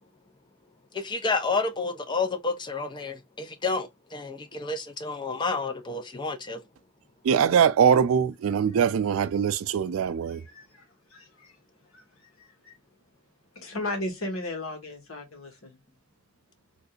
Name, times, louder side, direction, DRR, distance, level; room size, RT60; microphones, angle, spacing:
voice 1, 0.9-6.6, left 3 dB, 20° left, 0.5 m, -30 dB
voice 2, 7.3-10.4, right 7 dB, 80° right, 0.3 m, -22 dB
voice 3, 10.0-10.8 11.1-11.5 11.9-12.0 12.4-12.7 13.5-15.8, left 1 dB, 80° left, 1.4 m, -36 dB
3.6 x 2.6 x 2.4 m
head